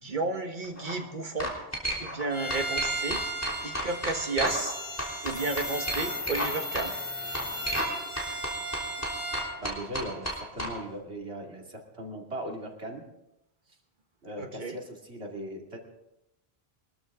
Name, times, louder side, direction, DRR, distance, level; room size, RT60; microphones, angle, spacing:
voice 1, 0.0-1.5 2.0-3.2 3.6-4.8 5.2-6.9 14.4-14.8, right 3 dB, 50° right, 5 dB, 1.6 m, -32 dB
sound 1, 0.6-0.9 1.4-2.2 2.5-4.7 5.0-6.5 6.7-6.9 7.3-10.7, equal, 15° left, 3.5 m, -32 dB
Bowed string instrument, 2.3-9.5, right 2 dB, 10° right, 4.1 m, -37 dB
sound 2, 4.5-8.3, left 4 dB, 30° left, 1.4 m, -38 dB
voice 2, 9.6-13.0 14.2-15.8, right 1 dB, 85° right, 0 dB, 2.7 m, -39 dB
22.5 x 13.5 x 3.7 m, 0.90 s
omnidirectional pair, 1.1 m